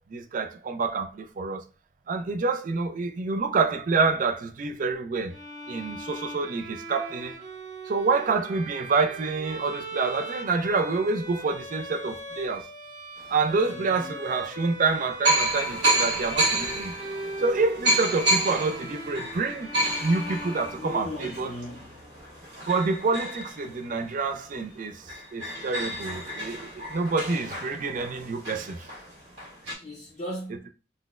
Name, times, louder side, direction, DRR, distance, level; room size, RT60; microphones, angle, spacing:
voice 1, 0.1-1.6 2.1-5.4 5.7-7.3 7.9-12.7 13.3-16.9 17.4-19.8 20.0-21.5 22.7-28.9, right 4 dB, 50° right, 0.4 m, -27 dB
Bowed string instrument, 5.3-21.2, right 1 dB, 25° right, 1.2 m, -40 dB
sound 1, 13.5-13.6 14.5-14.6 15.3-24.4 24.8-24.9 25.1-29.7, right 1 dB, 75° right, 1.4 m, -30 dB
voice 2, 13.7-14.2 20.8-22.0 29.8-30.7, left 1 dB, 45° left, 0.5 m, -38 dB
3.9 x 2.0 x 2.4 m
head